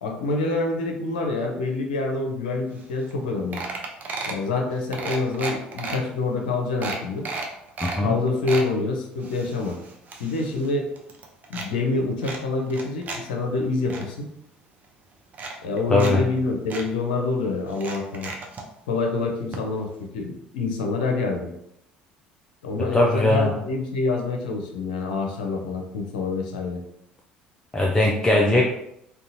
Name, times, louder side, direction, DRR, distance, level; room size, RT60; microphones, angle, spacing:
voice 1, 0.0-3.6 4.3-7.3 8.0-9.8 10.2-10.9 11.5-14.3 15.6-18.3 18.9-21.5 22.6-26.8, left 3 dB, 65° left, 2 dB, 0.6 m, -26 dB
sound 1, 2.8-2.9 3.1-3.3 3.5-4.4 4.9-6.0 6.4-6.5 6.8-8.0 8.3-8.7 9.2-10.7 11.0-11.7 12.2-13.2 13.5-14.0 14.8-14.9 15.3-16.1 16.4-16.5 16.7-16.9 17.7-18.6 19.5-19.6 19.9-20.0, right 3 dB, 35° right, 0.6 m, -33 dB
voice 2, 7.8-8.2 15.9-16.2 22.9-23.5 27.7-28.6, left 1 dB, 15° left, -1 dB, 0.5 m, -20 dB
3.7 x 2.3 x 2.7 m, 0.78 s
figure-of-eight pair, 60°, 5 cm